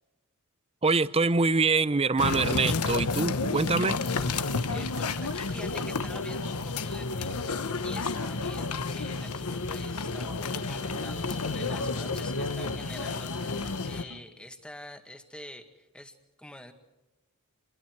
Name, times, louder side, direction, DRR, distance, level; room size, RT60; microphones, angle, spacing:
voice 1, 0.8-4.0, right 4 dB, 25° right, 16 dB, 0.7 m, -25 dB
sound 1, 2.2-14.0, left 3 dB, 85° left, 1.2 m, -31 dB
sound 2, 3.9-14.2, left 8 dB, 65° left, 3.9 m, -47 dB
sound 3, 4.0-9.2 9.5-9.6 9.8-9.9 10.2-10.3 10.6-10.7 10.9-11.0 11.3-11.4 11.7-11.8 12.2-12.3 12.6-12.7 13.1-13.2 13.6-13.7 14.1-14.2, right 5 dB, 80° right, 1.1 m, -47 dB
voice 2, 4.7-16.7, left 1 dB, 5° left, 6 dB, 2.0 m, -46 dB
29.0 x 22.5 x 4.7 m, 1.1 s
head